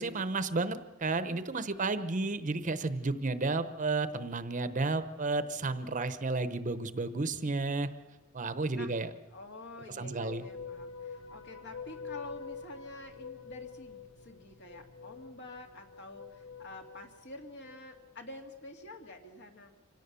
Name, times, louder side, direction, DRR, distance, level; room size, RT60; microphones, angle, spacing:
voice 1, 0.0-7.9 8.3-9.1 10.0-10.4, right 3 dB, 40° right, 12 dB, 0.9 m, -32 dB
voice 2, 9.3-19.7, left 2 dB, 55° left, 4 dB, 2.4 m, -48 dB
sound 1, 10.2-18.2, left 5 dB, 80° left, 0.9 m, -47 dB
26.0 x 17.5 x 6.9 m, 1.1 s
head